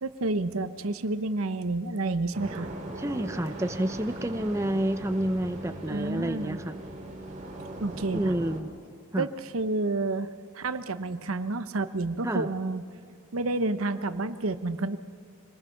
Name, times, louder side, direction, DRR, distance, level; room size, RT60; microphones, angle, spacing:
voice 1, 0.0-2.7 5.9-6.6 7.8-8.3 9.2-10.3 10.5-12.9 13.3-15.0, right 2 dB, 85° right, 11 dB, 1.0 m, -30 dB
sound 1, 2.3-8.6, right 2 dB, 35° right, 2.5 m, -39 dB
voice 2, 3.0-6.7 8.1-8.7 9.1-9.3 12.2-12.5, right 1 dB, 15° right, 8 dB, 0.7 m, -29 dB
25.5 x 19.5 x 5.9 m, 2.3 s
head